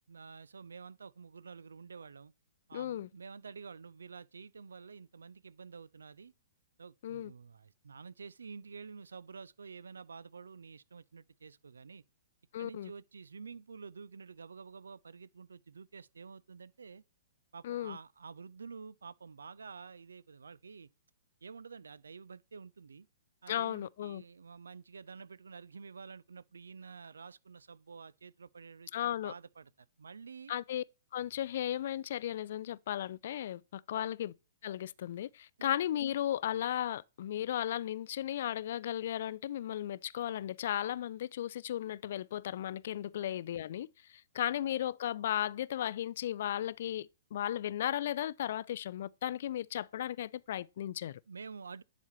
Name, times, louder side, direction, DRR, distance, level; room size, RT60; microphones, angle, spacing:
voice 1, 0.1-2.3 2.7-6.3 6.8-12.0 12.6-17.0 17.5-20.9 21.4-23.1 23.4-29.7 30.0-30.5 33.9-34.2 35.6-35.7 43.2-43.3 51.3-51.8, right 5 dB, 70° right, 0.4 m, -49 dB
voice 2, 2.7-3.1 7.0-7.3 12.5-12.9 17.6-18.0 23.5-24.2 28.9-29.3 30.5-30.8 31.1-34.3 34.6-51.2, left 11 dB, 55° left, 0.3 m, -35 dB
10.5 x 4.1 x 3.1 m
figure-of-eight pair, 115°, 0 cm